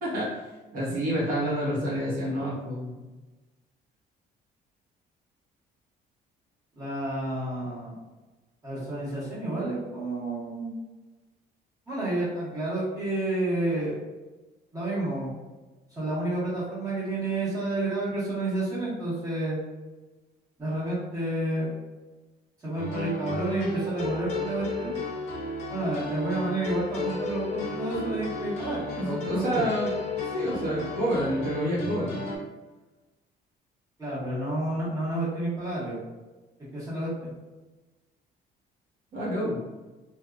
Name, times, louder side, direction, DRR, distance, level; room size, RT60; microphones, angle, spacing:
voice 1, 0.0-0.4 0.7-3.0 29.0-29.9 30.2-32.2 39.1-39.6, equal, 55° right, -6 dB, 1.3 m, -28 dB
voice 2, 6.7-7.9 8.6-10.7 11.9-14.0 14.7-15.4 15.9-19.6 20.6-21.7 22.6-24.9 25.7-29.6 34.0-36.0 36.7-37.3, right 2 dB, 20° right, -9 dB, 1.4 m, -30 dB
sound 1, 22.8-32.4, left 2 dB, 40° left, 0.8 m, -33 dB
3.4 x 2.7 x 2.4 m, 1.2 s
cardioid pair, 175°, 18 cm